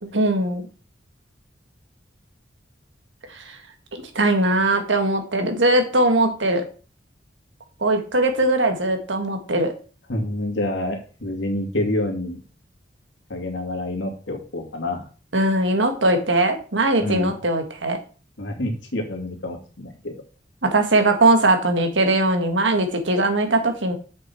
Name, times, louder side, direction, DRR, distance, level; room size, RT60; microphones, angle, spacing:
voice 1, 0.0-0.7 3.3-3.6 3.9-6.6 7.8-9.7 15.3-18.0 20.6-23.9, right 2 dB, 90° right, 5 dB, 1.7 m, -20 dB
voice 2, 10.1-12.4 13.3-15.0 17.0-17.3 18.4-20.2, left 1 dB, 85° left, 2 dB, 2.3 m, -27 dB
7.6 x 6.4 x 4.5 m, 0.37 s
head